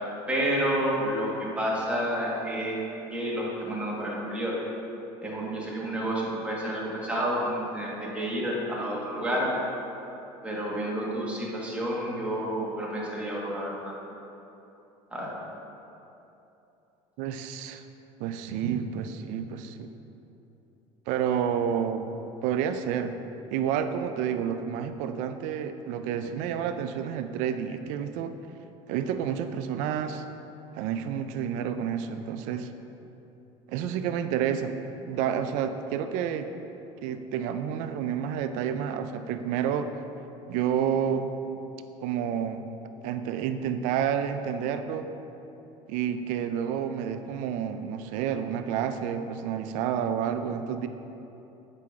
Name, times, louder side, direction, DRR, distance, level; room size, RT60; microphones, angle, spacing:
voice 1, 0.3-2.8 3.1-4.6 5.2-9.5 10.4-13.9 15.1-15.3, equal, 10° right, -5 dB, 1.5 m, -30 dB
voice 2, 17.2-17.8 18.2-19.9 21.1-22.1 22.4-23.1 23.5-28.3 28.9-30.2 30.7-32.7 33.7-34.7 35.1-36.5 37.0-39.9 40.5-41.3 42.0-42.6 43.0-45.1 45.9-50.9, right 8 dB, 75° right, 9 dB, 0.4 m, -29 dB
7.7 x 4.9 x 3.6 m, 3.0 s
supercardioid pair, 115°, 13 cm